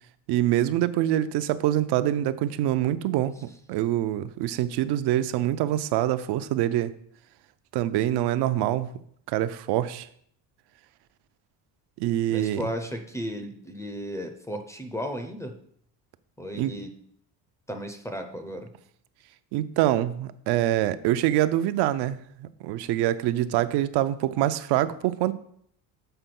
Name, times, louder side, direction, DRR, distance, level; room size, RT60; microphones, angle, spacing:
voice 1, 0.3-6.9 7.7-8.9 9.3-10.1 12.0-12.6 16.5-16.7 19.5-25.3, right 13 dB, 75° right, 13 dB, 0.6 m, -25 dB
voice 2, 12.3-15.6 16.4-16.9 17.7-18.7, equal, 10° left, 5 dB, 0.4 m, -34 dB
6.8 x 4.5 x 5.9 m, 0.66 s
cardioid pair, 155°, 40 cm